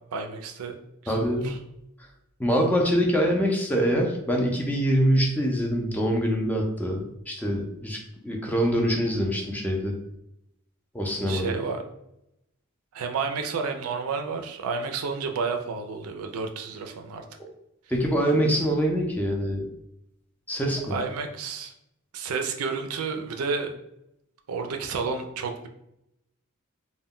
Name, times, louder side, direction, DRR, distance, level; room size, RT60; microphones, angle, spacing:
voice 1, 0.1-0.8 1.0-1.6 11.3-11.8 12.9-17.2 20.9-21.7 22.1-23.7 24.5-25.7, right 5 dB, 80° right, 5 dB, 0.4 m, -31 dB
voice 2, 1.1-1.6 2.4-8.0 8.2-10.0 10.9-11.5 17.9-19.6 20.5-20.9, equal, 10° left, 0 dB, 0.4 m, -24 dB
2.1 x 2.1 x 3.6 m, 0.82 s
head